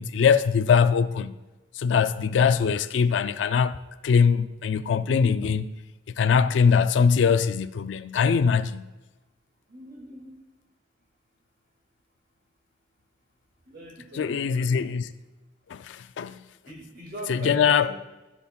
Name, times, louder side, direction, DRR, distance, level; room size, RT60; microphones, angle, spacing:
voice 1, 0.0-1.3 1.8-5.7 6.2-8.9 14.1-15.1 15.7-16.4 17.3-17.9, left 6 dB, 70° left, 0.3 m, -22 dB
voice 2, 9.7-10.4 13.7-14.9 16.7-17.9, right 1 dB, 55° right, 2.0 m, -41 dB
12.0 x 7.2 x 2.3 m
head